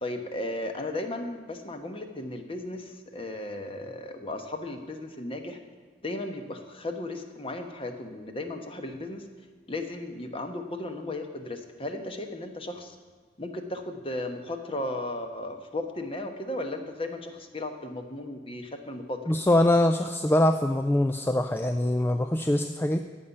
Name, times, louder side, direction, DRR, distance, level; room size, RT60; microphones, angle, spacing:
voice 1, 0.0-5.6 6.0-9.2 9.7-13.0 13.4-19.2, left 1 dB, 30° left, 5 dB, 1.2 m, -35 dB
voice 2, 19.3-23.0, left 1 dB, 10° left, 8 dB, 0.4 m, -23 dB
15.0 x 5.6 x 9.8 m, 1.5 s
head